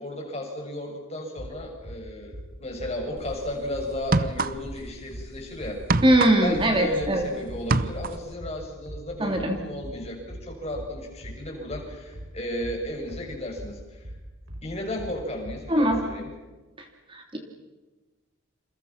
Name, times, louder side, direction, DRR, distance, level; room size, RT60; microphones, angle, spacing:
voice 1, 0.0-5.8 6.4-14.1 14.6-16.3, left 1 dB, 30° left, 1 dB, 7.2 m, -34 dB
sound 1, 1.4-16.1, equal, 75° right, 6.2 m, -41 dB
sound 2, 3.2-3.4 4.0-4.9 5.2-7.3 7.5-8.3, right 3 dB, 45° right, 0.8 m, -26 dB
voice 2, 6.0-7.3 9.2-9.6 15.7-16.0 17.1-17.4, right 1 dB, 25° right, 2 dB, 3.1 m, -21 dB
29.0 x 28.5 x 6.0 m, 1.2 s
head